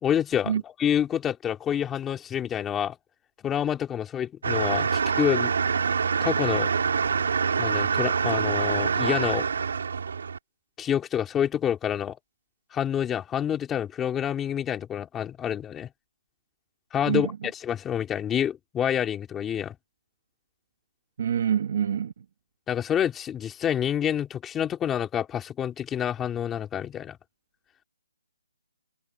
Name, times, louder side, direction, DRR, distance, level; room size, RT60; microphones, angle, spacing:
voice 1, 0.0-0.5 0.8-3.0 3.4-5.5 6.2-6.7 7.6-9.4 10.8-12.2 12.7-15.9 16.9-17.3 17.6-19.8 22.7-27.2, left 9 dB, 5° left, 2.9 m, -27 dB
sound 1, 4.4-10.4, right 6 dB, 50° right, 3.6 m, -25 dB
voice 2, 17.0-17.4 21.2-22.2, right 8 dB, 35° right, 1.5 m, -26 dB
hypercardioid pair, 175°, 0 cm